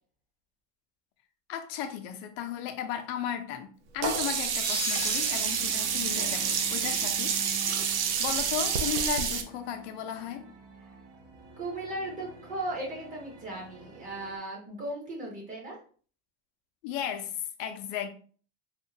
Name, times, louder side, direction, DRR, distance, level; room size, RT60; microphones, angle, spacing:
voice 1, 1.5-3.7 3.9-7.8 8.2-10.4 16.8-17.3 17.6-18.1, left 8 dB, 65° left, 0.7 m, -35 dB
Sink (filling or washing), 4.0-9.4, right 7 dB, 80° right, 0.7 m, -28 dB
sound 1, 4.6-6.0, left 4 dB, 20° left, 0.4 m, -37 dB
sound 2, 4.9-14.4, right 4 dB, 45° right, 0.9 m, -48 dB
voice 2, 11.6-15.8, right 1 dB, 25° right, 1.2 m, -37 dB
3.6 x 2.4 x 2.8 m
cardioid pair, 170°, 34 cm